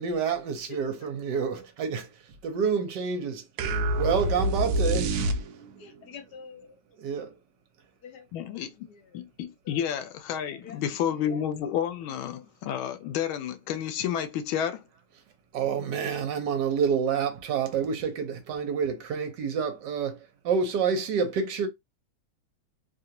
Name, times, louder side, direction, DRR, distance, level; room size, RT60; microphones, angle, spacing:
voice 1, 0.0-2.1 2.4-3.4 4.0-5.1 7.0-7.3 15.5-21.7, right 6 dB, 65° right, 1.2 m, -28 dB
voice 2, 0.7-1.1 5.8-6.8 7.2-7.3 8.0-8.4 8.7-9.3 9.6-9.9 10.5-10.8 11.1-11.4 12.1-12.5, left 7 dB, 65° left, 1.2 m, -48 dB
sound 1, 3.6-5.9, right 1 dB, 85° right, 0.8 m, -26 dB
voice 3, 8.3-8.7 9.1-14.8, left 9 dB, 80° left, 1.4 m, -30 dB
3.4 x 2.4 x 2.8 m
omnidirectional pair, 2.2 m